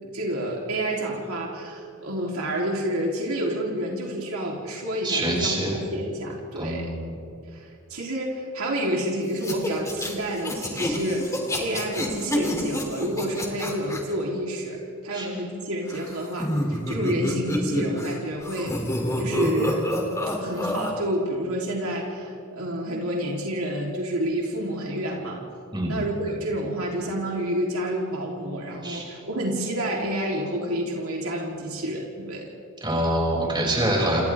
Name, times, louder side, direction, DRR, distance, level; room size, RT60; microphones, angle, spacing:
voice 1, 0.0-6.9 7.5-18.8 19.2-19.9 20.4-25.4 25.9-32.5, right 1 dB, 75° right, -2 dB, 3.7 m, -29 dB
voice 2, 5.0-5.7 6.6-7.1 15.1-15.3 25.7-26.0 28.8-29.0 32.8-34.2, right 1 dB, 20° right, -3 dB, 6.6 m, -25 dB
sound 1, 9.4-14.0 15.9-18.2 18.4-20.9, left 1 dB, 15° left, 3.2 m, -28 dB
29.5 x 28.5 x 3.7 m, 2.5 s
head